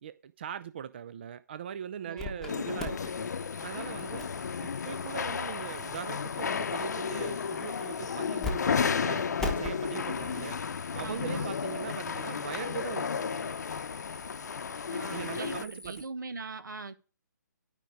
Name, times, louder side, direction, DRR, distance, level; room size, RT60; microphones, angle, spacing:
voice 1, 0.0-3.1 3.6-4.3 4.6-10.6 10.9-13.5 15.1-16.1, right 8 dB, 35° right, 0.4 m, -40 dB
voice 2, 2.0-2.5 11.0-11.5 14.9-16.9, right 3 dB, 80° right, 1.4 m, -41 dB
sound 1, 2.2-2.5 2.8-8.5 8.8-8.9 9.4-16.0, left 2 dB, ahead, 1.1 m, -43 dB
sound 2, 2.5-15.6, left 6 dB, 60° left, 0.7 m, -33 dB
12.0 x 5.3 x 4.9 m
hypercardioid pair, 160°, 10 cm